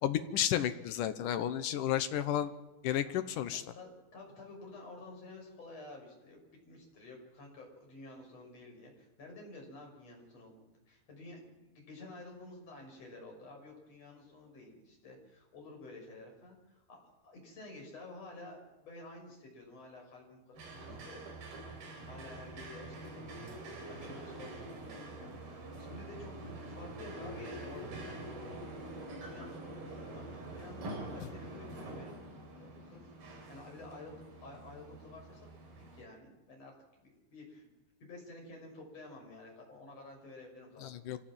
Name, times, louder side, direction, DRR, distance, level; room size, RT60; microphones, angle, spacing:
voice 1, 0.0-2.5 2.8-3.6 31.2-31.3 40.8-41.2, left 11 dB, 75° left, 10 dB, 1.9 m, -32 dB
voice 2, 3.7-6.4 6.7-21.2 21.6-28.8 29.2-32.3 32.6-33.1 33.5-35.4 35.9-37.7 38.0-40.9, left 2 dB, 35° left, 1 dB, 7.1 m, -51 dB
sound 1, 20.6-36.0, right 2 dB, 55° right, 5.7 m, -46 dB
25.5 x 16.5 x 7.6 m, 1.0 s
omnidirectional pair, 5.2 m